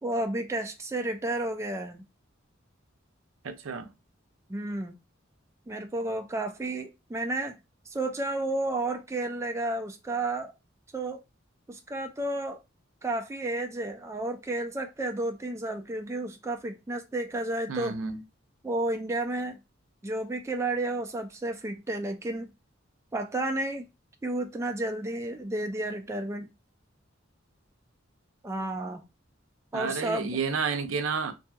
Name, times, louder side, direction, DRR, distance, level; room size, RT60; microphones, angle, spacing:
voice 1, 0.0-2.0 4.5-4.9 5.7-7.6 7.9-10.5 10.9-11.2 11.7-12.6 13.0-18.0 18.6-19.6 20.0-22.5 23.1-23.9 24.2-26.5 28.4-29.0 29.7-30.4, right 2 dB, 15° right, 0.3 m, -31 dB
voice 2, 3.4-3.9 17.7-18.2 29.7-31.3, right 5 dB, 80° right, 0.5 m, -30 dB
2.7 x 2.6 x 2.3 m
head